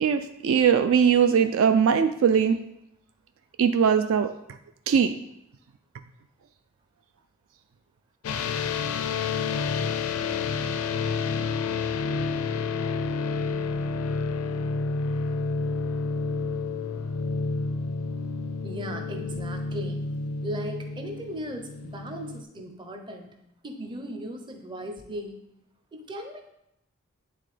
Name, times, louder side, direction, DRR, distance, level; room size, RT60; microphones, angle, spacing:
voice 1, 0.0-2.6 3.6-4.3 4.9-5.1, right 7 dB, 65° right, 8 dB, 0.3 m, -20 dB
sound 1, 8.2-22.4, left 4 dB, 80° left, 0.4 m, -29 dB
voice 2, 18.6-20.1 20.4-23.4 23.6-25.4 25.9-26.5, equal, 20° right, 4 dB, 0.7 m, -37 dB
9.8 x 3.8 x 3.2 m, 0.81 s
head